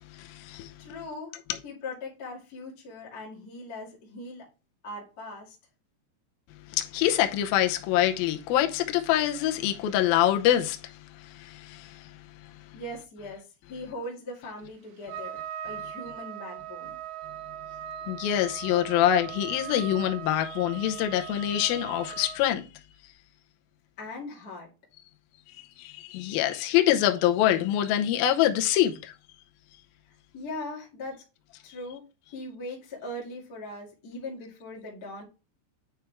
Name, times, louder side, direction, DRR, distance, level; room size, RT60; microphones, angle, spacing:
voice 1, 0.1-0.7 6.7-10.9 11.2-12.1 18.1-22.7 25.5-29.1, left 12 dB, 80° left, 2.2 m, -25 dB
voice 2, 0.8-4.5 4.8-5.5 12.7-17.0 24.0-24.7 30.3-31.2 31.6-35.2, left 2 dB, 35° left, 1.7 m, -40 dB
Trumpet, 15.1-22.4, right 9 dB, 75° right, 3.2 m, -40 dB
9.3 x 4.6 x 3.4 m
omnidirectional pair, 5.2 m